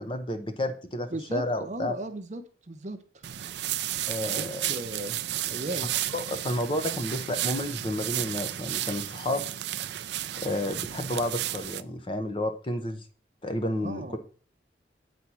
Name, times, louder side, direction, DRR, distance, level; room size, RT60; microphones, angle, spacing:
voice 1, 0.0-1.9 4.1-4.7 6.1-9.5 10.4-13.0 13.4-14.2, left 1 dB, 30° left, 7 dB, 0.8 m, -31 dB
voice 2, 1.1-3.3 4.3-5.2 5.5-5.9 13.8-14.2, right 1 dB, 40° right, 8 dB, 0.7 m, -36 dB
sound 1, 3.2-11.8, right 13 dB, 65° right, 0.4 m, -33 dB
8.1 x 4.3 x 6.0 m, 0.41 s
head